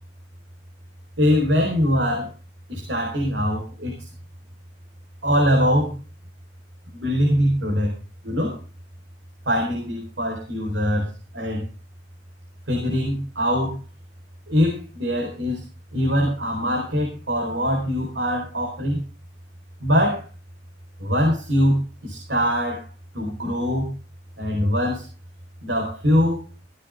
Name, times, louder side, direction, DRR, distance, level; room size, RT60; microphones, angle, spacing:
voice 1, 1.2-2.3 2.7-4.1 5.2-6.0 6.9-7.9 8.2-8.6 9.5-11.1 11.3-11.6 12.7-13.7 14.5-15.6 15.9-19.0 19.8-20.2 21.0-22.9 23.1-23.9 24.4-25.0 25.6-26.4, equal, 75° right, 0 dB, 4.3 m, -22 dB
16.0 x 14.0 x 3.6 m, 0.33 s
head